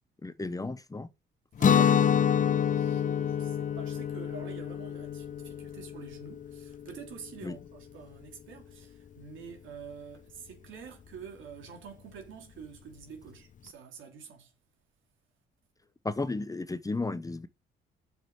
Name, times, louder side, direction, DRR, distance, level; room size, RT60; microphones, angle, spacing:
voice 1, 0.2-1.1 7.4-7.5 16.0-17.5, left 3 dB, 15° left, 0.9 m, -33 dB
Guitar, 1.6-7.4, left 8 dB, 40° left, 0.6 m, -27 dB
voice 2, 1.6-14.5, right 6 dB, 75° right, 3.2 m, -47 dB
6.6 x 5.9 x 7.3 m
cardioid pair, 90°, 20 cm